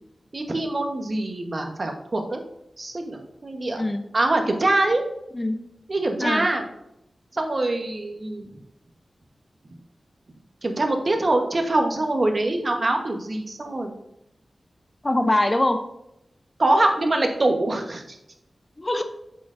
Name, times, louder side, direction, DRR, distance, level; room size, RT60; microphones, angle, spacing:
voice 1, 0.3-2.4 2.8-3.8 4.1-5.0 5.9-6.6 7.3-8.5 10.6-13.9 16.6-18.2, right 2 dB, 45° right, 4 dB, 1.1 m, -24 dB
voice 2, 15.0-15.8 17.0-17.1 18.8-19.0, left 1 dB, 25° left, 8 dB, 0.6 m, -22 dB
8.0 x 7.6 x 2.6 m, 0.83 s
wide cardioid pair, 75°, 0 cm